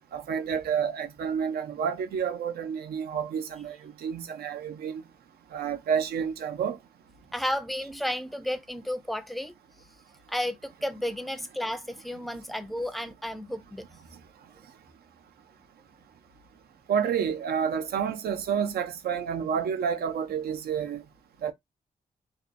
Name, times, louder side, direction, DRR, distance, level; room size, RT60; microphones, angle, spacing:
voice 1, 0.1-5.0 5.5-6.8 16.9-21.0 21.4-21.5, right 7 dB, 85° right, 0.5 m, -29 dB
voice 2, 7.3-9.5 10.3-13.9, left 1 dB, ahead, 0.4 m, -32 dB
2.6 x 2.2 x 2.4 m
cardioid pair, 80°, 16 cm